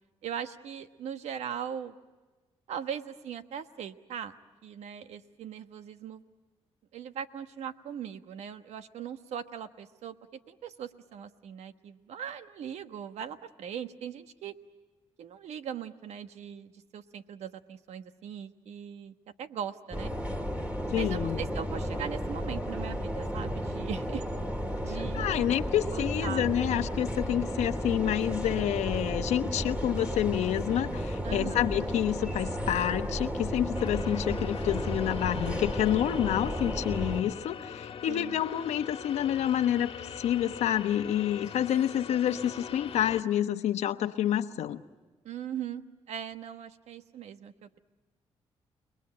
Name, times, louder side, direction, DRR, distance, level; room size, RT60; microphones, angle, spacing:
voice 1, 0.2-1.9 2.7-4.3 4.6-6.2 6.9-14.5 15.2-20.1 20.9-24.2 24.8-25.4 25.9-26.7 31.2-31.7 38.1-38.4 45.2-47.8, right 8 dB, 80° right, 9 dB, 1.2 m, -40 dB
sound 1, 19.9-37.2, equal, 10° right, 3.0 m, -33 dB
voice 2, 20.9-21.4 25.1-39.9 40.2-44.8, left 11 dB, 85° left, 10 dB, 1.0 m, -28 dB
sound 2, 33.7-43.2, left 7 dB, 60° left, 1.5 m, -42 dB
30.0 x 20.5 x 8.9 m, 1.2 s
cardioid pair, 75°, 11 cm